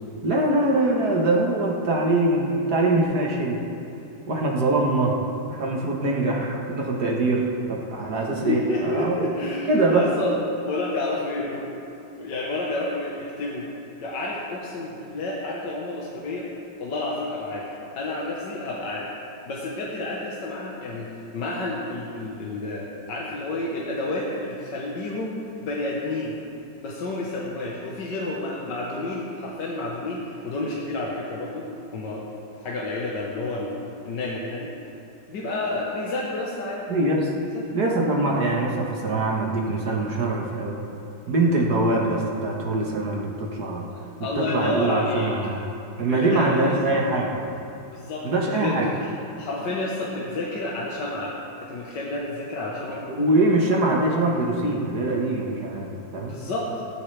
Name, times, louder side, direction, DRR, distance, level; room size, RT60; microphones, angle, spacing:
voice 1, 0.2-3.6 4.3-5.2 5.5-9.3 9.7-10.1 36.9-37.3 37.7-40.8 41.3-43.9 44.2-45.6 46.0-47.3 48.2-48.9 53.1-56.3, right 2 dB, 55° right, -1 dB, 1.9 m, -23 dB
voice 2, 8.5-11.7 12.2-13.7 14.0-16.5 16.8-19.1 19.4-21.1 21.3-26.4 26.8-31.7 31.9-32.3 32.6-33.8 34.1-34.7 35.3-36.9 37.4-37.6 43.9-45.3 46.1-46.7 47.9-49.1 49.4-51.4 51.6-53.1 56.2-56.7, left 2 dB, 65° left, -4 dB, 1.8 m, -30 dB
16.5 x 13.5 x 3.4 m, 2.7 s
omnidirectional pair, 2.1 m